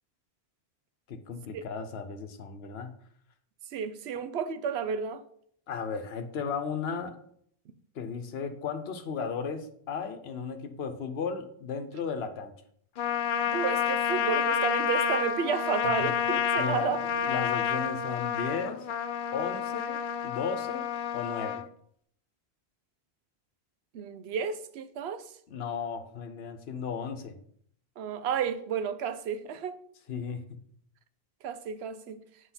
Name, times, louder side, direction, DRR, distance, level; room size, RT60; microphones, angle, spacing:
voice 1, 1.1-2.9 5.7-7.2 8.0-12.5 16.0-16.1 16.6-17.0 17.2-18.8 19.3-20.9 21.1-21.6 25.5-27.4 30.1-30.4, left 6 dB, 75° left, 1.0 m, -35 dB
voice 2, 3.7-5.2 13.5-17.0 23.9-25.3 28.0-29.8 31.4-32.2, right 7 dB, 80° right, 0.9 m, -32 dB
Trumpet, 13.0-21.7, left 8 dB, 60° left, 0.7 m, -29 dB
7.9 x 4.9 x 4.2 m
omnidirectional pair, 1.1 m